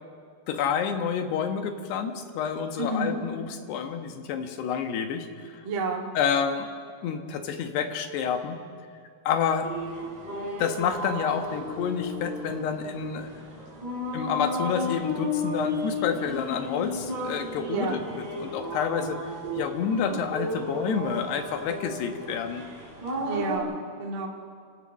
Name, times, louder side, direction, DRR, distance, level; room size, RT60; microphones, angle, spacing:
voice 1, 0.5-5.3 6.2-6.7 7.0-8.6 9.3-9.7 10.6-13.3 14.1-19.3 19.6-22.6, left 7 dB, 85° left, 6 dB, 3.5 m, -29 dB
voice 2, 2.8-3.2 5.6-6.0 17.7-18.0 23.2-23.7 24.0-24.3, right 3 dB, 40° right, -1 dB, 2.2 m, -29 dB
sound 1, 9.6-23.6, left 1 dB, 10° right, 5.0 m, -34 dB
29.0 x 17.0 x 6.4 m, 2.1 s
omnidirectional pair, 4.6 m